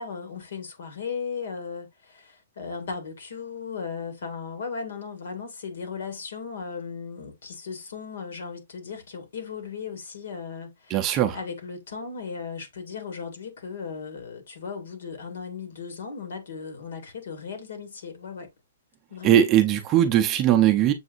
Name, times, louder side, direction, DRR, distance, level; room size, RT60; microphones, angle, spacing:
voice 1, 0.0-11.0 11.3-18.5 19.1-19.4, left 5 dB, 65° left, 1.7 m, -36 dB
voice 2, 10.9-11.4 19.2-20.9, right 11 dB, 15° right, 0.5 m, -19 dB
7.0 x 2.6 x 2.5 m
hypercardioid pair, 175°, 0 cm